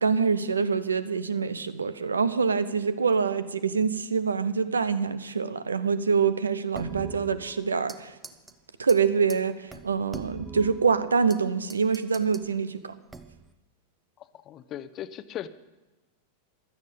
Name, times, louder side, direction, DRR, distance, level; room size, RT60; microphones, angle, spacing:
voice 1, 0.0-8.1 8.8-12.9, right 5 dB, 75° right, 15 dB, 0.8 m, -25 dB
sound 1, 6.7-8.0 8.2-8.5 8.9-9.0 9.3-9.4 9.7-11.4 11.7-12.5 13.1-13.5, right 3 dB, 15° right, 0.9 m, -42 dB
voice 2, 14.2-15.5, left 11 dB, 30° left, 14 dB, 0.7 m, -38 dB
16.0 x 12.0 x 5.3 m, 1.1 s
figure-of-eight pair, 90°, 0 cm